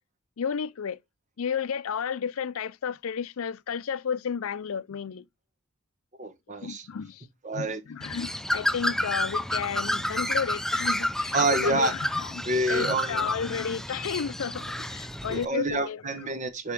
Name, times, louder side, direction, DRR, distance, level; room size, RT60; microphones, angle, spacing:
voice 1, 0.4-1.0 1.4-5.3 6.6-7.3 7.5-12.4 12.7-16.0, left 7 dB, 80° left, 0.5 m, -32 dB
voice 2, 6.2-6.9 7.4-7.8 11.3-11.9 12.4-13.3 15.3-16.7, right 2 dB, 35° right, 1.7 m, -28 dB
Bird, 8.0-15.5, left 1 dB, ahead, 0.4 m, -30 dB
10.5 x 4.3 x 3.5 m
head